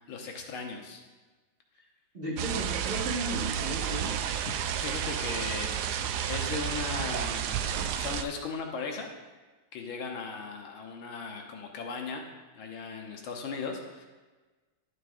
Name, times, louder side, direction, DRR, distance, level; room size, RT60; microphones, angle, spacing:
voice 1, 0.1-1.0 4.5-6.0 6.3-7.5 8.0-9.1 9.7-12.2 12.5-14.0, left 4 dB, 85° left, 2 dB, 1.9 m, -37 dB
voice 2, 2.1-4.1, right 1 dB, 30° right, -5 dB, 1.8 m, -35 dB
sound 1, 2.4-8.2, right 9 dB, 75° right, 0.9 m, -31 dB
11.5 x 8.4 x 2.6 m, 1.3 s
omnidirectional pair, 2.2 m